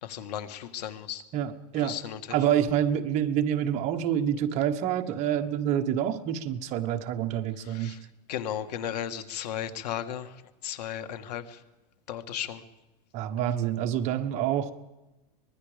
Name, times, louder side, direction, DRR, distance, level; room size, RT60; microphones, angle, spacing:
voice 1, 0.0-1.2 1.8-2.4 7.6-8.0 8.3-11.6 12.1-12.6, left 10 dB, 80° left, 10 dB, 1.8 m, -35 dB
voice 2, 1.3-2.0 2.3-7.9 13.1-14.7, right 10 dB, 35° right, 5 dB, 1.3 m, -27 dB
24.5 x 21.0 x 5.1 m, 1.0 s
supercardioid pair, 170°, 20 cm